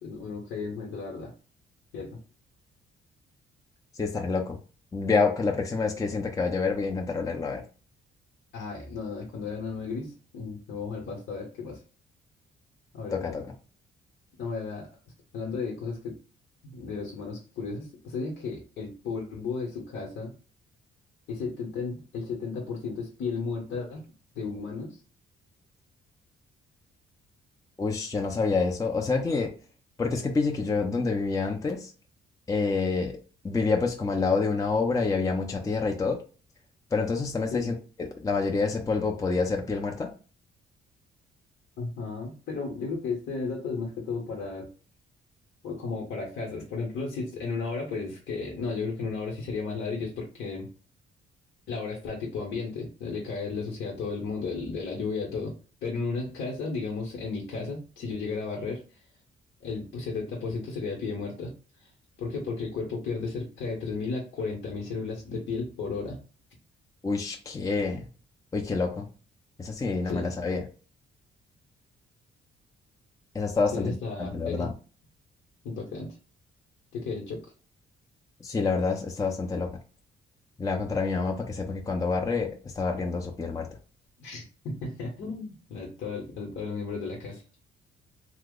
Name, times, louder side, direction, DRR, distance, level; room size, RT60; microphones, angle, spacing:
voice 1, 0.0-1.3 1.9-2.2 8.5-11.8 12.9-13.3 14.4-14.9 15.3-16.2 16.6-20.3 21.3-24.0 24.3-25.0 37.5-37.7 41.8-44.7 45.6-50.7 51.7-58.8 59.6-61.5 61.8-61.9 62.2-66.2 70.0-70.3 73.7-74.7 75.6-76.2 76.9-77.4 84.2-87.4, left 4 dB, 75° left, -2 dB, 0.9 m, -34 dB
voice 2, 3.9-4.6 4.9-7.6 13.1-13.5 27.8-29.5 30.0-31.9 32.5-33.1 33.4-36.2 36.9-37.7 38.2-40.1 67.0-68.1 68.5-69.1 69.6-70.6 73.3-74.7 78.4-79.7 80.6-83.7, left 4 dB, 15° left, 1 dB, 0.5 m, -27 dB
2.8 x 2.0 x 3.6 m, 0.37 s
cardioid pair, 90°, 20 cm